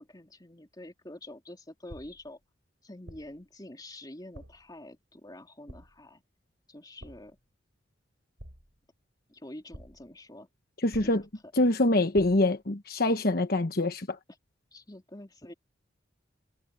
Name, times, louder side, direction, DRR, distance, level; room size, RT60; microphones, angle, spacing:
voice 1, 0.0-2.4 2.8-6.2 6.7-7.4 9.3-10.5 11.0-11.2 14.7-15.5, left 1 dB, 20° left, 3.2 m, -47 dB
sound 1, 1.9-2.4 3.1-3.5 4.3-4.7 5.7-6.1 7.0-7.4 8.4-8.9 9.7-10.2 10.9-11.5 12.1-12.6, equal, 85° right, 8.0 m, -49 dB
voice 2, 10.8-11.2 11.5-14.2, left 2 dB, 55° left, 1.2 m, -25 dB
head